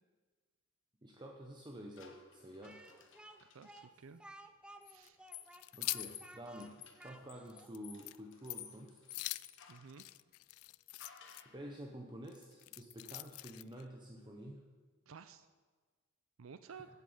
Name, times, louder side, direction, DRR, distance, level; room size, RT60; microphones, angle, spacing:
voice 1, 1.0-2.8 5.7-9.0 11.5-14.6, equal, 20° right, 1 dB, 0.9 m, -49 dB
sound 1, 2.0-3.8 4.8-10.0 11.0-11.6, left 9 dB, 60° left, 1.4 m, -55 dB
Speech, 2.6-7.7, right 1 dB, 5° right, 0.5 m, -56 dB
voice 2, 3.4-4.2 4.9-5.2 9.7-10.0 15.1-15.5 16.4-16.9, right 6 dB, 70° right, 12 dB, 0.5 m, -53 dB
sound 2, 5.0-6.2 6.6-6.7 7.1-7.2 7.5-7.8 8.0-8.2 8.5-8.7 9.1-11.4 12.3-13.8, left 20 dB, 90° left, 0.3 m, -43 dB
15.0 x 8.1 x 5.6 m, 1.4 s
head